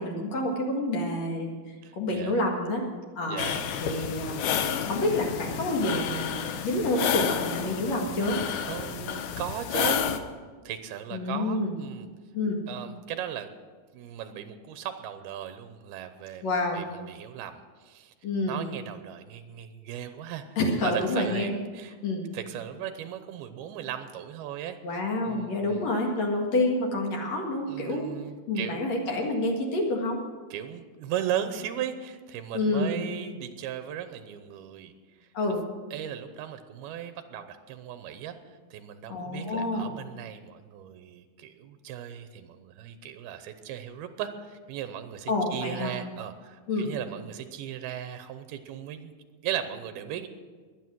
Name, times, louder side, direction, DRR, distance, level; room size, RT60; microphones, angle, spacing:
voice 1, 0.0-1.6 1.9-2.8 3.2-3.4 3.8-4.4 4.8-8.4 11.1-11.7 12.3-12.6 16.4-16.8 18.2-18.6 20.6-21.6 22.0-22.3 24.8-28.1 28.5-30.2 32.5-33.0 35.3-35.6 39.1-39.9 45.3-45.9 46.7-46.9, left 2 dB, 50° left, 0 dB, 2.6 m, -28 dB
voice 2, 1.8-2.4 3.3-3.7 8.7-10.0 10.6-12.1 12.7-13.5 13.9-18.1 18.5-20.4 20.8-22.0 22.3-25.9 27.7-28.8 30.5-34.9 35.2-35.3 35.9-49.1 49.4-50.3, right 10 dB, 90° right, 9 dB, 2.8 m, -37 dB
sound 1, 3.4-10.2, left 8 dB, 75° left, 1.7 m, -30 dB
22.0 x 9.3 x 6.2 m, 1.5 s
omnidirectional pair, 4.4 m